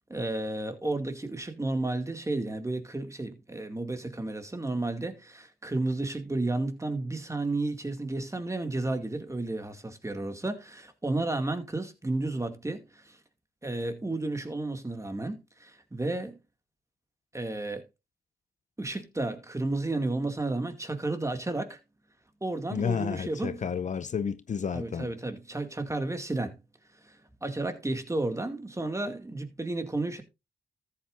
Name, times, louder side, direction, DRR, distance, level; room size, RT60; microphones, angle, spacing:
voice 1, 0.0-13.2 13.6-16.4 17.3-17.9 18.8-21.8 22.4-23.6 24.7-26.6 27.0-30.2, right 2 dB, 20° right, 2.2 m, -32 dB
voice 2, 22.7-25.1, left 7 dB, 50° left, 0.6 m, -31 dB
13.5 x 8.4 x 2.6 m
supercardioid pair, 50°, 16 cm